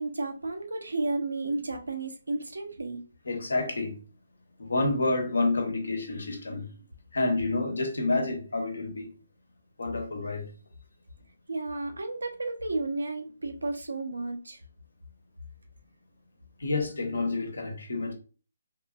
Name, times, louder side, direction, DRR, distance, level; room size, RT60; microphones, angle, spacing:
voice 1, 0.0-3.0 11.5-14.6, right 2 dB, 85° right, 0.8 m, -32 dB
voice 2, 3.3-4.0 4.6-6.7 7.1-9.2 9.8-10.5 16.6-18.1, left 2 dB, 75° left, 1.0 m, -29 dB
3.7 x 2.5 x 2.3 m
figure-of-eight pair, 150°, 0 cm